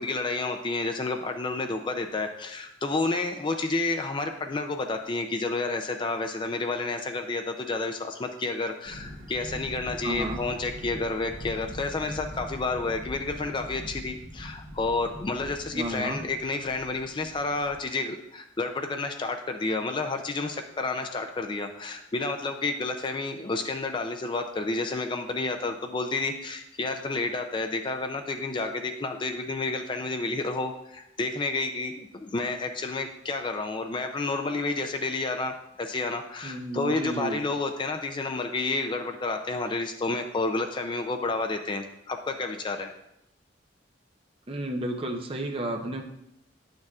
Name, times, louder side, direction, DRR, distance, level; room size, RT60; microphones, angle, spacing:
voice 1, 0.0-42.9, left 3 dB, 25° left, 5 dB, 0.4 m, -30 dB
sound 1, 8.8-17.8, equal, 60° right, 1.8 m, -42 dB
voice 2, 10.0-10.5 15.7-16.2 36.4-37.4 44.5-46.0, right 1 dB, 30° right, 3 dB, 0.7 m, -32 dB
9.9 x 6.5 x 2.4 m, 0.81 s
head